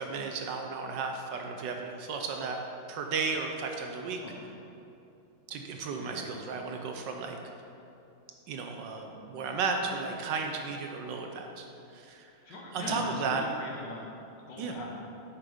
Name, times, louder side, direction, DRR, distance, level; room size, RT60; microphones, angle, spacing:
voice 1, 0.0-2.6 2.9-4.2 5.5-7.4 8.5-13.5 14.6-14.8, right 4 dB, 70° right, 3 dB, 1.3 m, -34 dB
voice 2, 12.5-14.1 14.5-14.9, left 2 dB, 65° left, -1 dB, 1.7 m, -40 dB
7.6 x 6.0 x 5.1 m, 2.7 s
omnidirectional pair, 2.2 m